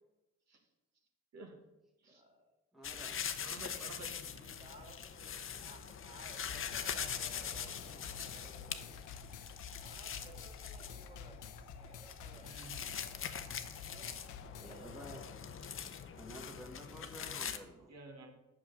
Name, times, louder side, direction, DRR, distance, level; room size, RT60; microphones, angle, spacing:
voice 1, 2.1-2.5 4.3-8.8 9.7-12.5 13.7-15.3, equal, 20° right, 2 dB, 2.4 m, -58 dB
voice 2, 2.7-3.2 14.5-15.2 16.2-17.9, equal, ahead, -1 dB, 1.4 m, -51 dB
sound 1, 2.8-17.6, left 7 dB, 45° left, 0.7 m, -43 dB
voice 3, 3.4-4.2 12.4-13.0 17.9-18.3, right 2 dB, 60° right, 2 dB, 1.5 m, -50 dB
sound 2, 6.5-14.8, left 6 dB, 80° left, 0.7 m, -51 dB
6.3 x 5.9 x 6.5 m, 0.98 s
cardioid pair, 90°, 30 cm